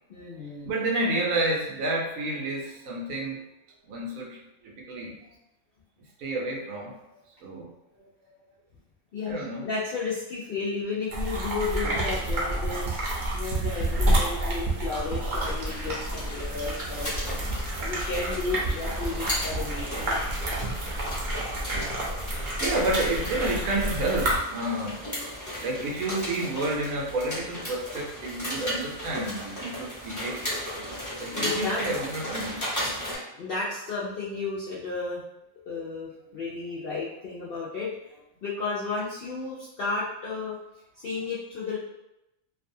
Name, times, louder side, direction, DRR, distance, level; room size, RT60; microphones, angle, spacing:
voice 1, 0.1-0.7 9.1-17.1 17.8-20.4 31.3-31.8 33.4-35.2 35.6-37.9 38.4-40.6 41.0-41.8, left 4 dB, 70° left, -7 dB, 0.5 m, -33 dB
voice 2, 0.6-3.4 3.8-5.2 6.2-7.0 7.4-7.7 8.0-8.3 9.3-9.7 17.7-17.8 20.8-21.1 22.0-25.0 25.3-30.7 31.2-32.9, right 2 dB, 75° right, -1 dB, 1.0 m, -30 dB
sound 1, 11.1-24.4, right 1 dB, 55° right, 0.6 m, -29 dB
sound 2, 15.3-33.2, equal, 20° left, 0.6 m, -36 dB
2.6 x 2.2 x 2.6 m, 0.90 s
omnidirectional pair, 1.5 m